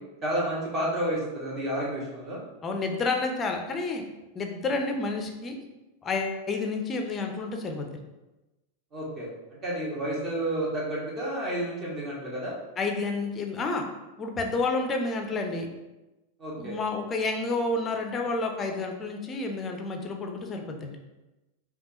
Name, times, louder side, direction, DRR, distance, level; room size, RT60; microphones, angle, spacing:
voice 1, 0.2-2.4 8.9-9.3 9.6-12.5 16.4-16.8, right 1 dB, 25° right, -5 dB, 1.4 m, -30 dB
voice 2, 2.6-4.0 4.3-5.5 6.0-7.9 12.8-13.8 14.2-15.7 16.6-21.0, left 3 dB, 20° left, 3 dB, 0.6 m, -30 dB
5.2 x 2.4 x 2.8 m, 1.0 s
figure-of-eight pair, 90°, 0 cm